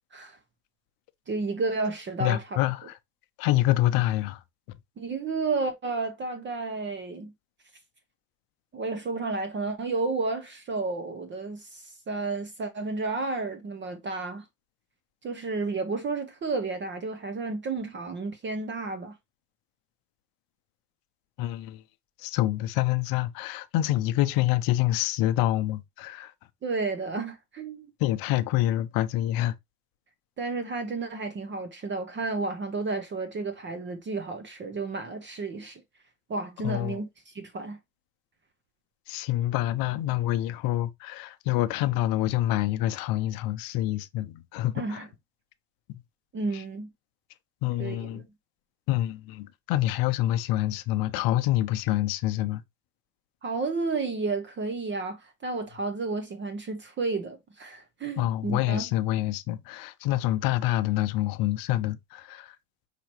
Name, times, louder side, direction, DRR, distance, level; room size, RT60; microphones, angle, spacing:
voice 1, 1.3-2.4 5.0-7.3 8.7-14.4 15.2-19.1 26.6-27.9 30.4-35.8 36.3-37.8 44.7-45.1 46.3-46.9 47.8-48.2 53.4-58.8, right 3 dB, 30° right, 0.8 m, -32 dB
voice 2, 2.2-3.0 3.4-4.4 21.4-21.8 22.2-26.3 28.0-29.5 36.6-37.0 39.1-45.0 45.9-46.0 46.5-46.6 47.6-48.2 48.9-52.6 58.2-62.6, left 14 dB, 60° left, 0.7 m, -27 dB
5.8 x 3.0 x 3.0 m
hypercardioid pair, 90°, 40 cm